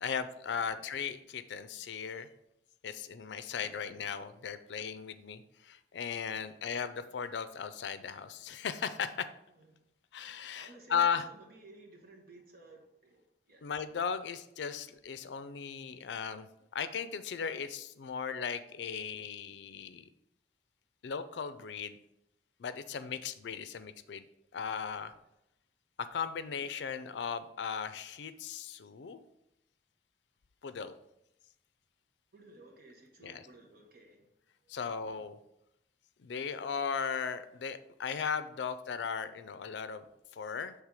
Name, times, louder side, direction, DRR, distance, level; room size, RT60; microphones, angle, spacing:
voice 1, 0.0-2.3 2.8-9.3 10.1-11.3 13.6-16.5 16.7-20.0 21.0-22.0 22.6-24.2 24.5-25.1 26.0-29.2 30.6-31.0 33.2-33.4 34.7-35.4 36.2-40.0 40.3-40.7, left 6 dB, 75° left, 12 dB, 0.4 m, -37 dB
voice 2, 3.4-3.8 9.5-9.9 10.5-13.6 23.0-23.2 32.3-34.3 34.6-34.8, right 2 dB, 55° right, 1 dB, 1.2 m, -56 dB
7.3 x 3.3 x 4.8 m, 0.83 s
head